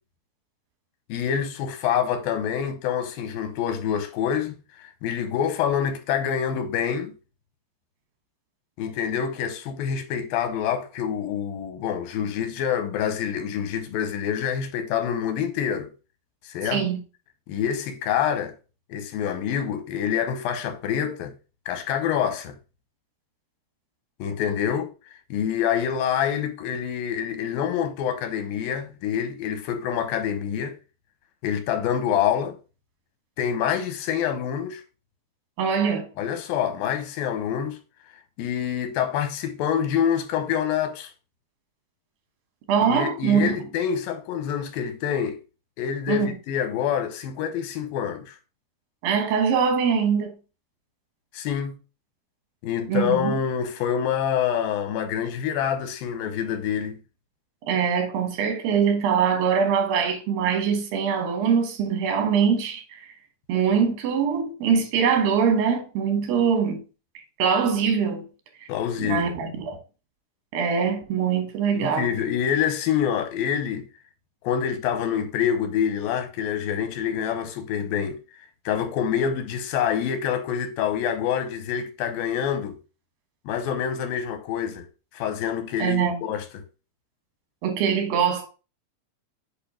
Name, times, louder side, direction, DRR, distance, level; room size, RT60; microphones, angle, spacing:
voice 1, 1.1-7.1 8.8-15.9 16.5-16.8 17.5-18.5 18.9-21.3 21.7-22.6 24.2-24.9 25.3-30.8 31.4-32.6 33.4-34.8 36.2-37.8 38.4-41.1 42.8-45.4 45.8-48.4 51.3-51.8 52.6-57.0 68.7-69.3 71.7-73.9 74.4-78.2 78.7-82.8 83.5-84.9 85.1-86.6, left 8 dB, 90° left, 2.7 m, -26 dB
voice 2, 35.6-36.1 42.7-43.6 46.1-46.3 49.0-50.3 52.9-53.4 57.7-63.0 63.5-66.8 67.4-68.2 69.0-69.8 70.5-72.1 85.8-86.2 87.6-88.5, right 7 dB, 80° right, 3.2 m, -23 dB
8.5 x 2.9 x 4.9 m
omnidirectional pair, 4.0 m